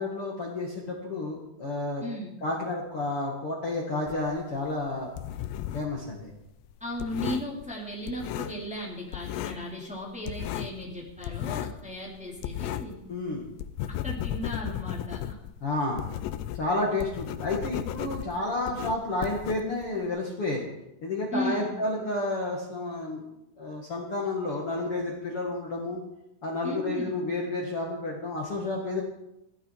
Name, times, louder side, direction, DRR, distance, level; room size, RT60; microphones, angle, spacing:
voice 1, 0.0-2.0 2.4-5.1 5.7-6.3 13.1-13.4 15.6-16.0 16.5-20.6 21.0-23.2 23.6-26.0 26.4-29.0, left 2 dB, 55° left, -1 dB, 1.5 m, -31 dB
voice 2, 2.0-2.3 6.8-13.0 13.9-15.4 21.3-21.8 26.6-27.2, equal, ahead, -3 dB, 1.9 m, -36 dB
sound 1, 4.1-6.0 6.3-8.8 9.1-9.7 10.0-13.0 13.4-20.1, left 12 dB, 85° left, 3.4 m, -35 dB
16.0 x 14.0 x 4.8 m, 0.87 s
omnidirectional pair, 5.8 m